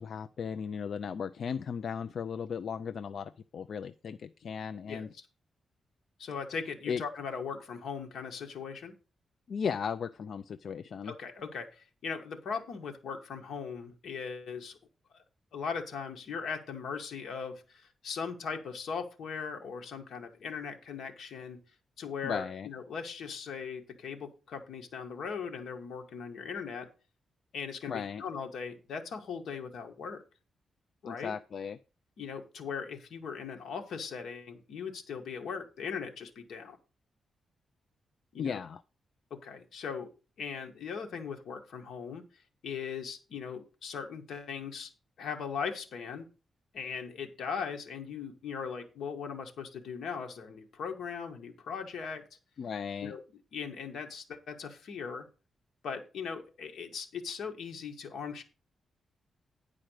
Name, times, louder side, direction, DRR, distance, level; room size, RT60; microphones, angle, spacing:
voice 1, 0.0-5.1 6.9-7.0 9.5-11.1 22.2-22.7 27.9-28.2 31.0-31.8 38.4-38.8 52.6-53.2, left 6 dB, 55° left, 12 dB, 0.4 m, -36 dB
voice 2, 4.9-5.3 6.2-8.9 11.0-14.8 15.1-15.2 15.5-21.6 22.0-26.9 27.5-30.2 31.0-31.3 32.2-36.8 38.3-38.6 39.3-40.1 40.4-42.2 42.6-44.9 45.2-46.3 46.7-52.2 53.0-53.2 53.5-55.3 55.8-58.4, left 6 dB, 75° left, 4 dB, 1.8 m, -39 dB
10.5 x 4.9 x 6.4 m, 0.33 s
wide cardioid pair, 145°, 0 cm